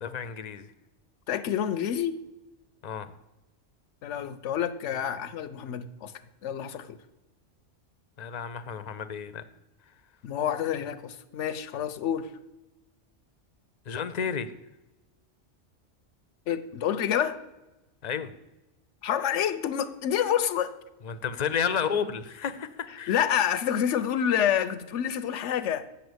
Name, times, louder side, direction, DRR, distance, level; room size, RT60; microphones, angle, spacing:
voice 1, 0.0-0.7 2.8-3.1 8.2-9.4 13.9-14.5 18.0-18.3 21.0-23.2, left 7 dB, 45° left, 11 dB, 0.6 m, -31 dB
voice 2, 1.3-2.2 4.0-6.1 6.4-7.0 10.2-12.3 16.5-17.4 19.0-20.7 23.1-25.9, left 9 dB, 80° left, 13 dB, 1.0 m, -28 dB
8.6 x 7.0 x 7.9 m, 1.0 s
omnidirectional pair, 1.2 m